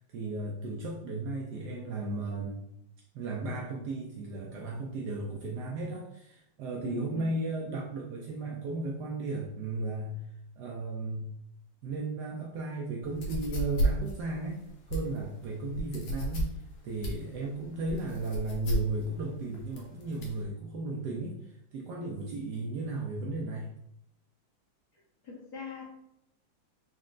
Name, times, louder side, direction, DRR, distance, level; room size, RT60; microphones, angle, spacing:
voice 1, 0.0-2.6 3.1-10.2 10.6-11.3 11.8-14.6 14.9-23.7, right 2 dB, 85° right, -2 dB, 0.9 m, -35 dB
voice 2, 6.8-7.3 25.2-25.8, left 6 dB, 55° left, -6 dB, 1.4 m, -41 dB
sound 1, 13.1-20.4, right 1 dB, 80° left, 1.7 m, -33 dB
4.2 x 2.2 x 3.7 m, 0.77 s
omnidirectional pair, 2.4 m